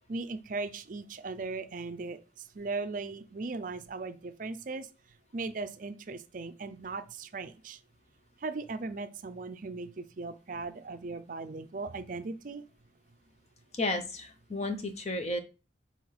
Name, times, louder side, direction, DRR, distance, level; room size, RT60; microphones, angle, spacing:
voice 1, 0.1-2.2 2.5-4.9 5.3-7.8 8.4-12.6, right 3 dB, 50° right, 10 dB, 0.5 m, -38 dB
voice 2, 13.7-15.4, left 2 dB, 40° left, 7 dB, 0.8 m, -32 dB
5.6 x 3.6 x 4.7 m, 0.32 s
head